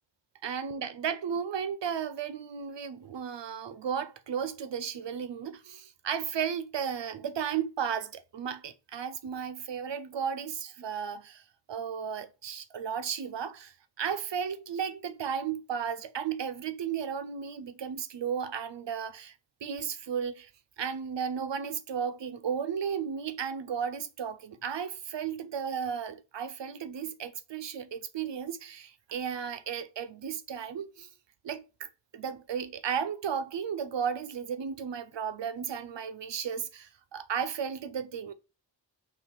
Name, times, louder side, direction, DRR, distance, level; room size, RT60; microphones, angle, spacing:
voice 1, 0.4-11.4 11.7-19.3 19.6-20.5 20.8-31.1 31.4-38.3, right 7 dB, 80° right, 0.6 m, -34 dB
4.8 x 3.1 x 3.5 m
wide cardioid pair, 75°, 43 cm